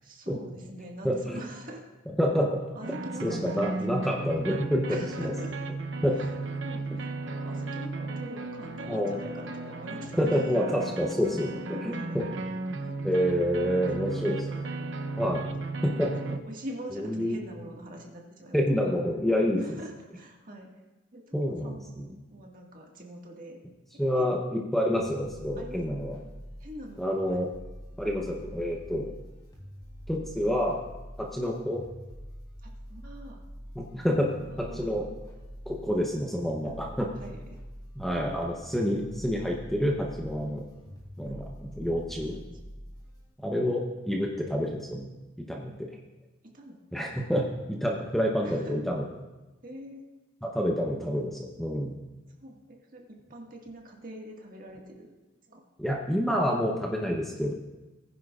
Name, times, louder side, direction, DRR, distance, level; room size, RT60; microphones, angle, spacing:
voice 1, 0.0-1.9 2.7-3.8 4.9-5.5 6.1-6.3 6.6-10.7 11.9-12.1 12.8-13.4 13.9-14.8 15.2-15.5 16.0-18.9 19.6-20.7 21.1-23.6 24.2-24.3 25.6-25.8 26.6-27.4 32.6-33.4 34.3-34.9 36.8-37.4 38.1-38.4 41.3-41.4 42.3-42.7 45.7-45.8 46.5-46.8 47.1-47.3 48.4-48.8 49.6-50.0 50.4-50.6 52.4-55.1 55.5-55.6, right 1 dB, 40° right, 0 dB, 1.8 m, -44 dB
voice 2, 1.0-1.4 2.2-2.6 3.2-4.9 5.2-5.3 6.0-6.2 8.9-9.2 10.2-12.3 13.0-14.4 15.2-15.5 15.8-16.1 16.9-17.4 18.5-19.8 21.3-22.1 24.0-26.2 27.0-27.5 28.0-29.1 30.1-30.8 31.2-31.8 33.8-34.3 34.6-35.1 35.7-37.1 38.0-40.6 41.2-42.4 43.4-45.1 45.5-45.7 46.9-47.4 47.8-49.0 50.4-51.9 55.8-57.5, equal, ahead, -1 dB, 0.8 m, -28 dB
sound 1, 2.8-16.4, right 3 dB, 60° right, 0.7 m, -35 dB
sound 2, 25.0-43.2, equal, 20° left, 3.3 m, -45 dB
19.5 x 10.0 x 2.4 m, 1.1 s
head